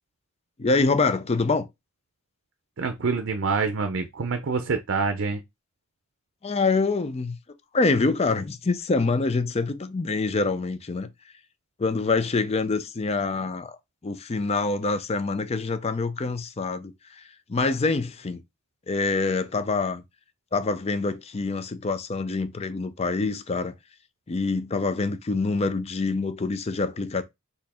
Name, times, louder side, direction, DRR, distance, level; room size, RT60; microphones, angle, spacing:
voice 1, 0.6-1.7 6.4-7.4 7.7-11.1 11.8-13.8 14.0-17.2 17.5-18.4 18.9-20.0 20.5-23.7 24.3-27.2, left 3 dB, 30° left, 0.4 m, -25 dB
voice 2, 2.8-5.4, right 4 dB, 60° right, 0.5 m, -26 dB
4.4 x 2.7 x 4.2 m
head